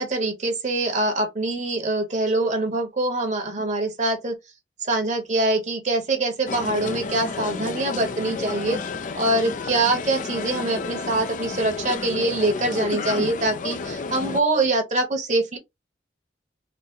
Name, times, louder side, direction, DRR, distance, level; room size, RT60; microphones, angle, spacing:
voice 1, 0.0-4.4 4.8-8.8 9.1-15.6, right 2 dB, 45° right, 1.1 m, -24 dB
sound 1, 6.5-14.4, left 4 dB, 45° left, 0.4 m, -31 dB
4.0 x 2.1 x 3.7 m
head